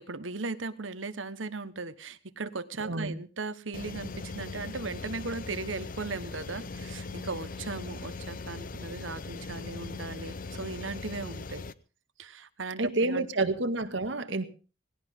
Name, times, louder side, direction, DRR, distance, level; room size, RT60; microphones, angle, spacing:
voice 1, 0.0-11.6 12.2-13.5, right 3 dB, 90° right, 13 dB, 1.3 m, -37 dB
voice 2, 2.8-3.1 12.8-14.5, right 2 dB, 70° right, 9 dB, 1.9 m, -29 dB
sound 1, 3.7-11.7, left 3 dB, 45° left, 0.8 m, -40 dB
19.0 x 17.5 x 3.7 m, 0.36 s
head